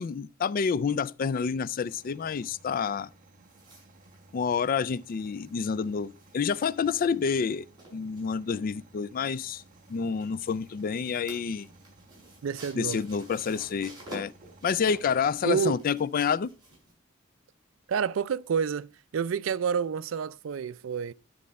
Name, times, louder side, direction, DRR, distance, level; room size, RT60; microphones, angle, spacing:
voice 1, 0.0-3.1 4.3-7.7 7.9-9.6 9.9-11.7 12.8-14.3 14.6-16.5, left 6 dB, 45° left, 0.3 m, -28 dB
sound 1, 1.8-15.8, right 2 dB, 40° right, 1.0 m, -57 dB
sound 2, 3.4-16.9, right 2 dB, 20° right, 5.8 m, -51 dB
voice 2, 12.4-13.0 15.4-15.8 17.9-21.1, right 7 dB, 90° right, 0.4 m, -29 dB
10.5 x 6.5 x 4.2 m
head